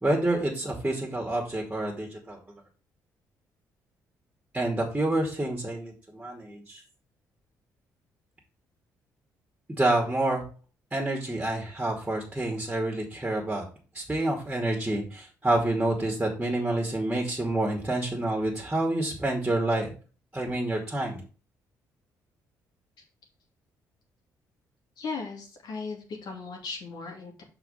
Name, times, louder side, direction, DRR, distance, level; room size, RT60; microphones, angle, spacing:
voice 1, 0.0-2.4 4.5-6.8 9.7-10.4 10.9-13.7 13.9-19.9 20.3-21.2, right 1 dB, 15° right, 0 dB, 2.5 m, -28 dB
voice 2, 25.0-27.4, left 4 dB, 65° left, 1 dB, 2.4 m, -37 dB
5.9 x 4.4 x 5.7 m, 0.36 s
hypercardioid pair, 55°, 8 cm